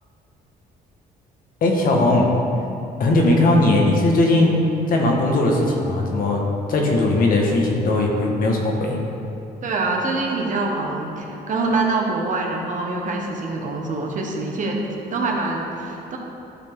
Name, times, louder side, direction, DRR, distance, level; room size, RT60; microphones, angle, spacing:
voice 1, 1.6-2.3 3.0-4.6 4.9-6.4 6.7-9.0, left 2 dB, 60° left, 0 dB, 1.3 m, -18 dB
voice 2, 9.6-16.2, right 3 dB, 50° right, 0 dB, 1.2 m, -25 dB
12.0 x 4.1 x 3.6 m, 2.8 s
cardioid pair, 95°, 17 cm